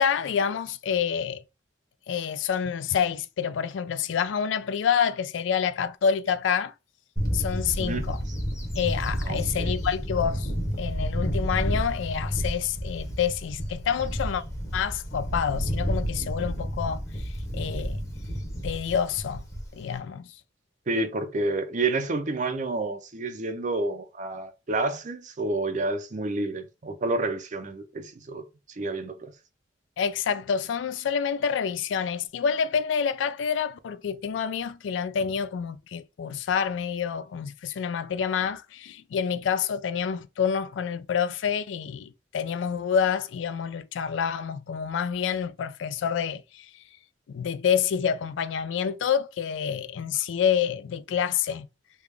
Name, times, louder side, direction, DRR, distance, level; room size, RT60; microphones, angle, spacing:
voice 1, 0.0-1.4 2.1-6.7 7.3-8.2 8.8-10.5 10.8-14.4 14.7-18.0 18.6-19.4 19.7-20.3 30.0-46.7 47.3-51.7, left 7 dB, 75° left, 0.3 m, -28 dB
Bird / Wind, 7.2-19.9, equal, 15° left, 0.8 m, -30 dB
voice 2, 9.3-9.7 20.9-28.4 28.8-29.3, right 2 dB, 40° right, 0.5 m, -29 dB
3.4 x 2.3 x 3.3 m
head